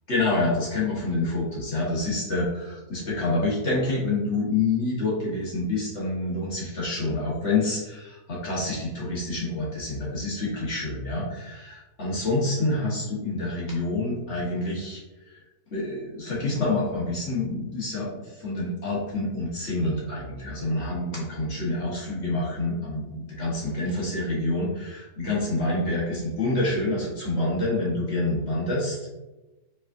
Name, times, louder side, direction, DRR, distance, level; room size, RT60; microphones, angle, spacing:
voice 1, 0.1-15.0 15.3-15.4 15.7-29.1, left 2 dB, 50° left, -5 dB, 1.7 m, -27 dB
4.9 x 4.0 x 2.6 m, 1.1 s
omnidirectional pair, 1.6 m